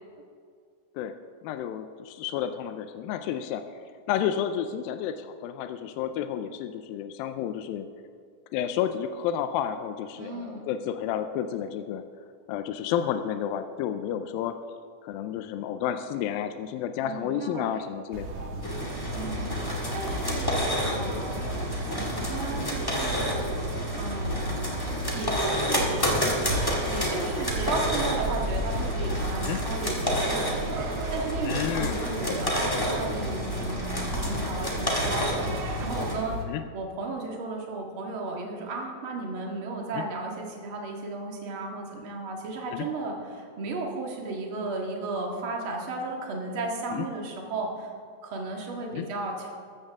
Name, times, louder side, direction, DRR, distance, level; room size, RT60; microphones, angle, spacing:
voice 1, 1.4-3.8 4.1-7.9 8.5-12.0 12.5-14.6 15.0-18.5 21.4-21.5 29.4-29.6 31.4-32.4 32.8-32.9 36.5-36.6 40.0-40.1 42.7-42.9 46.9-47.1 48.9-49.1, left 9 dB, 85° left, 9 dB, 2.3 m, -31 dB
voice 2, 10.2-10.6 17.0-17.9 19.1-19.5 19.9-23.5 23.9-24.8 25.1-26.2 26.9-36.4 36.7-47.9 48.2-49.5, right 3 dB, 45° right, 0 dB, 2.2 m, -34 dB
sound 1, 18.1-36.4, right 1 dB, 60° right, 1.8 m, -33 dB
sound 2, 18.6-36.2, equal, 15° left, 0.8 m, -30 dB
15.5 x 13.5 x 3.6 m, 2.1 s
omnidirectional pair, 4.2 m